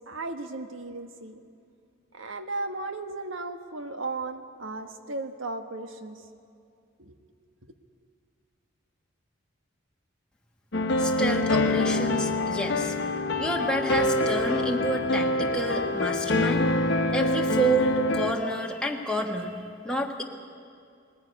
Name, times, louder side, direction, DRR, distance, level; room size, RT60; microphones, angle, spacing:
voice 1, 0.1-1.4 2.1-6.2 7.0-7.2, right 3 dB, 80° right, 7 dB, 1.4 m, -35 dB
sound 1, 10.7-18.3, left 2 dB, 60° left, 1.1 m, -25 dB
voice 2, 11.0-12.9 13.4-16.7 17.1-19.5 19.8-20.2, right 1 dB, 5° left, 0 dB, 1.5 m, -29 dB
20.0 x 15.0 x 9.7 m, 2.4 s
head